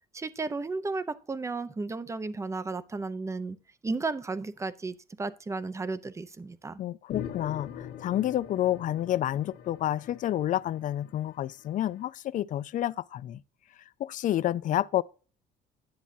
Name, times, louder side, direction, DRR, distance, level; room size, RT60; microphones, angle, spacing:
voice 1, 0.1-3.6 3.8-6.8, right 3 dB, 15° right, 0.6 m, -34 dB
voice 2, 6.8-13.4 14.0-15.0, left 12 dB, 50° left, 0.4 m, -29 dB
sound 1, 7.1-11.8, left 9 dB, 80° left, 1.4 m, -43 dB
10.5 x 7.1 x 2.7 m
cardioid pair, 110°, 17 cm